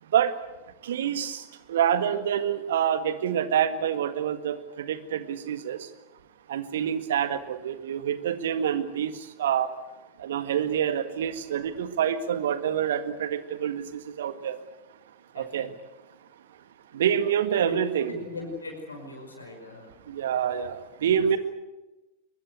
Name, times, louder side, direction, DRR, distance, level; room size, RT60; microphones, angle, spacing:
voice 1, 0.8-1.4 1.7-5.8 6.5-9.1 9.4-9.7 10.2-14.6 15.4-15.7 16.9-18.1 20.1-21.4, right 9 dB, 60° right, 11 dB, 1.7 m, -27 dB
voice 2, 15.3-15.7 17.5-17.8 18.1-19.9 20.2-20.4 21.1-21.4, left 3 dB, 75° left, 2 dB, 5.5 m, -40 dB
22.5 x 22.0 x 8.2 m, 1.1 s
figure-of-eight pair, 90°, 0 cm